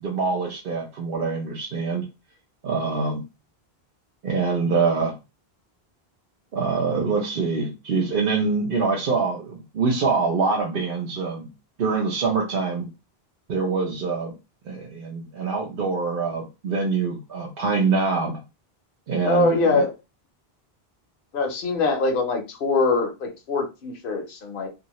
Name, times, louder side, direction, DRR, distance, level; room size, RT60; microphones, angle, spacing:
voice 1, 0.0-2.1 2.6-3.2 4.2-5.1 6.5-11.5 11.8-12.9 13.5-14.3 14.6-18.4 19.1-19.8, right 4 dB, 60° right, 0.8 m, -25 dB
voice 2, 19.2-19.9 21.3-24.7, left 3 dB, 60° left, 1.0 m, -23 dB
2.7 x 2.7 x 2.9 m
omnidirectional pair, 1.0 m